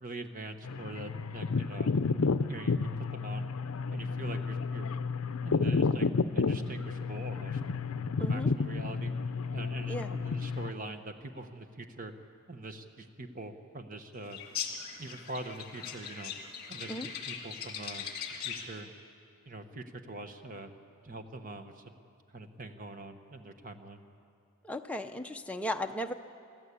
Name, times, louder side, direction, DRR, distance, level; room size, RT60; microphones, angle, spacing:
voice 1, 0.0-1.9 2.5-3.5 3.9-4.9 5.4-7.6 8.2-9.1 9.5-12.1 12.5-14.4 15.0-16.3 16.7-18.1 18.4-18.9 19.5-20.7 21.0-22.0 22.3-24.0, right 2 dB, 35° right, 8 dB, 1.1 m, -43 dB
sound 1, 0.6-10.7, left 4 dB, 70° left, 0.5 m, -31 dB
voice 2, 8.2-8.5 9.9-10.1 16.9-17.1 24.6-26.1, equal, 5° left, 4 dB, 0.6 m, -36 dB
sound 2, 14.3-18.8, left 7 dB, 45° left, 1.9 m, -40 dB
24.0 x 14.0 x 8.4 m, 2.4 s
head